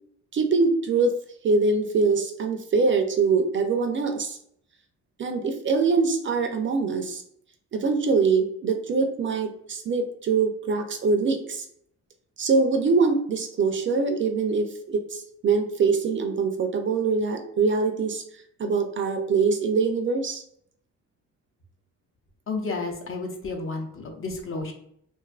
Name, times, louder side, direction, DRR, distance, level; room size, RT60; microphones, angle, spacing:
voice 1, 0.3-1.2 1.4-4.4 5.2-7.2 7.7-11.7 12.4-18.2 18.6-20.4, right 4 dB, 40° right, 5 dB, 0.4 m, -23 dB
voice 2, 22.5-24.7, left 3 dB, 45° left, 2 dB, 0.7 m, -31 dB
2.5 x 2.3 x 2.3 m, 0.69 s
cardioid pair, 90°, 30 cm